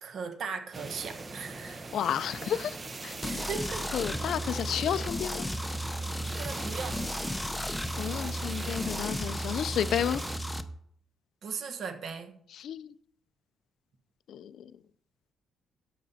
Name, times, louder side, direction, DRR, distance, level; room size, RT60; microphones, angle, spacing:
voice 1, 0.0-1.8 3.2-4.2 6.3-7.0 11.4-12.3, right 6 dB, 60° right, 1.0 m, -38 dB
sound 1, 0.7-10.4, right 3 dB, 30° right, 0.7 m, -42 dB
voice 2, 1.9-2.8 3.0-3.2 3.9-5.5 8.0-10.2 12.6-12.9 14.3-14.7, left 9 dB, 70° left, 0.3 m, -31 dB
sound 2, 3.2-10.6, equal, 10° left, 0.6 m, -34 dB
13.0 x 7.5 x 2.7 m
cardioid pair, 90°, 0 cm